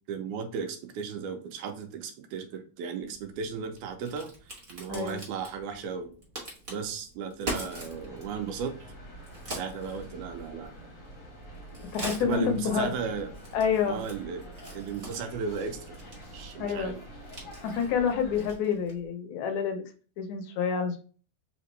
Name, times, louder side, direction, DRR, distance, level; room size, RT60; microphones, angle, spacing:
voice 1, 0.1-4.3 4.7-6.1 6.7-8.8 9.5-10.7 12.2-13.3 13.9-14.5 14.8-16.0 16.3-17.0, right 6 dB, 80° right, 6 dB, 2.1 m, -35 dB
Crack, 3.0-19.1, right 1 dB, 30° right, 0.9 m, -44 dB
sound 1, 7.7-18.5, right 1 dB, 40° left, 1.1 m, -46 dB
voice 2, 11.9-12.9 13.5-14.0 16.6-17.0 17.6-19.8 20.2-21.0, left 7 dB, 75° left, 6 dB, 2.0 m, -28 dB
5.1 x 2.9 x 3.1 m, 0.39 s
omnidirectional pair, 3.5 m